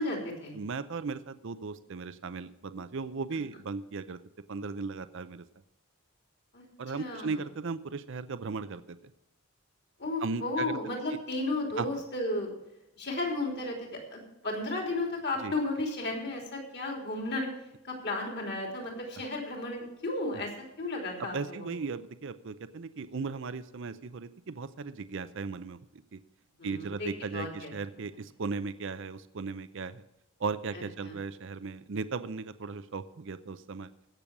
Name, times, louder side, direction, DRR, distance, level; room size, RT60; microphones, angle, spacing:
voice 1, 0.0-0.6 3.3-3.4 6.5-6.7 6.9-7.4 10.0-12.5 13.0-17.5 17.8-20.5 20.8-21.7 26.6-27.7 31.0-31.2, left 2 dB, 50° left, 1 dB, 3.4 m, -34 dB
voice 2, 0.5-4.2 4.5-5.4 6.8-9.0 10.2-10.8 11.8-11.9 15.4-15.5 21.2-26.2 26.6-30.0 30.4-33.9, right 4 dB, 55° right, 13 dB, 0.5 m, -37 dB
16.0 x 6.9 x 6.0 m, 0.93 s
head